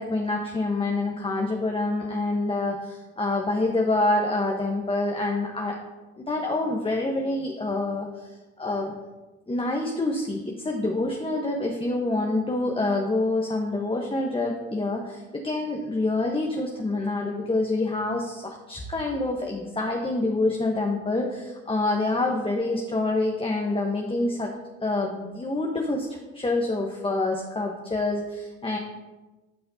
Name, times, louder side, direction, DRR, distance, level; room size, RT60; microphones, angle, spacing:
voice 1, 0.0-5.8 6.2-8.9 9.5-24.5 24.8-28.8, left 2 dB, 15° left, 1 dB, 1.1 m, -27 dB
11.5 x 5.7 x 2.8 m, 1.2 s
hypercardioid pair, 55°, 34 cm